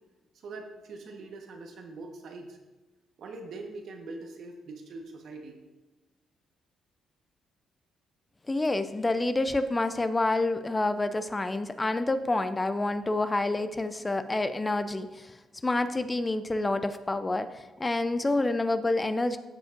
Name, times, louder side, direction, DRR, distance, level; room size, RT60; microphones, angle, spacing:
voice 1, 0.4-2.6 3.2-5.6, right 3 dB, 65° right, 3 dB, 1.2 m, -42 dB
voice 2, 8.5-15.4 15.6-19.4, left 2 dB, 20° left, 11 dB, 0.4 m, -28 dB
14.5 x 5.1 x 2.6 m, 1.2 s
cardioid pair, 90°, 0 cm